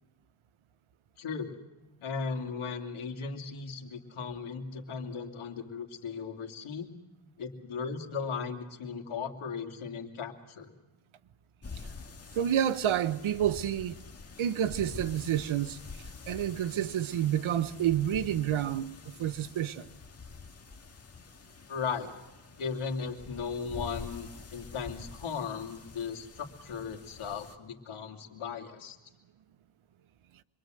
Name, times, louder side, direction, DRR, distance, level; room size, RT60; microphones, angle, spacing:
voice 1, 1.2-1.6 2.0-6.9 7.4-10.7 21.7-22.1 22.6-28.9, left 5 dB, 75° left, 2.8 m, -37 dB
sound 1, 11.6-27.6, left 4 dB, 30° left, 2.1 m, -47 dB
voice 2, 12.3-14.0 14.4-15.8 16.3-19.9, right 10 dB, 70° right, 1.1 m, -29 dB
26.5 x 23.0 x 7.8 m
cardioid pair, 115°, 50 cm